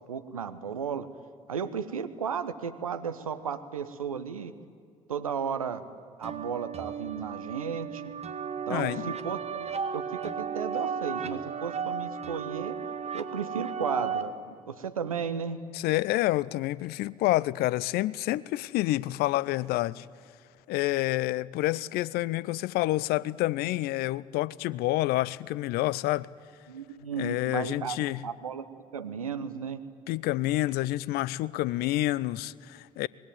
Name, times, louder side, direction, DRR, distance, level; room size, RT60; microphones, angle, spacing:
voice 1, 0.1-1.1 1.5-4.5 5.1-5.8 6.2-8.0 8.7-12.8 13.1-15.6 26.7-28.0 28.2-28.7 28.9-29.8, right 7 dB, 85° right, 0.9 m, -34 dB
sound 1, 6.2-14.2, right 6 dB, 35° right, 1.7 m, -34 dB
voice 2, 8.7-9.1 15.7-20.1 20.7-26.3 27.2-28.2 30.1-33.1, left 17 dB, 65° left, 0.6 m, -28 dB
25.0 x 20.5 x 9.3 m
figure-of-eight pair, 45°, 18 cm